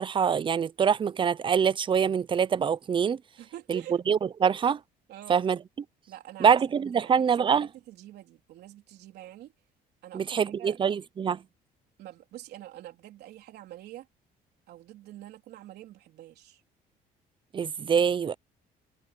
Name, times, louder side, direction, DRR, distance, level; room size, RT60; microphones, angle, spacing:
voice 1, 0.0-3.2 3.7-3.8 4.1-4.8 5.3-5.6 6.4-7.7 10.1-11.4 17.5-18.3, right 7 dB, 30° right, 0.6 m, -24 dB
voice 2, 3.4-4.0 5.1-5.5 6.1-6.5 6.9-7.2 7.5-9.5 10.0-10.8 12.0-14.1 14.7-16.6, right 14 dB, 75° right, 3.8 m, -46 dB
cardioid pair, 110°, 17 cm